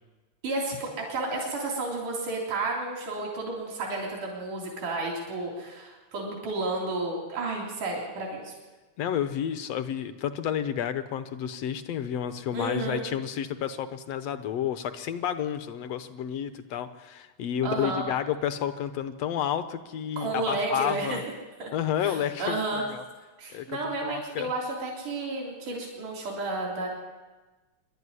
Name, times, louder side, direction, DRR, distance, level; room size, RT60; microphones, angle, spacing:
voice 1, 0.4-8.5 12.5-13.0 17.6-18.1 20.2-21.2 21.6-21.7 22.0-22.8 23.4-26.9, right 2 dB, 85° right, -2 dB, 5.0 m, -32 dB
voice 2, 9.0-21.2 21.7-23.0 23.5-24.5, left 9 dB, 65° left, 10 dB, 1.9 m, -31 dB
25.0 x 12.0 x 9.8 m, 1.2 s
omnidirectional pair, 3.5 m